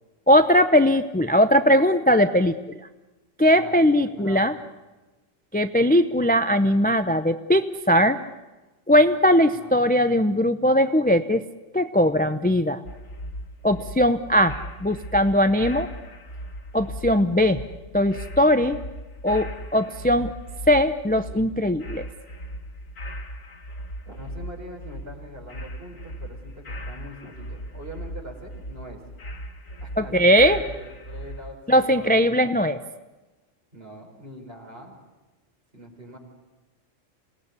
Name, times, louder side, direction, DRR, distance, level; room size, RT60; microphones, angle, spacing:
voice 1, 0.3-2.6 3.4-4.5 5.5-8.2 8.9-11.4 11.7-12.8 13.6-15.9 16.7-17.6 17.9-18.8 19.2-20.3 20.7-22.0 30.0-30.6 31.7-32.8, equal, 10° left, 10 dB, 0.5 m, -19 dB
voice 2, 3.5-4.6 9.4-9.8 24.0-29.0 29.8-32.6 33.7-35.0 35.7-36.2, equal, 45° right, 2 dB, 4.9 m, -43 dB
sound 1, 12.8-31.5, equal, 85° left, 2.3 m, -38 dB
27.0 x 18.5 x 9.8 m, 1.2 s
omnidirectional pair, 1.3 m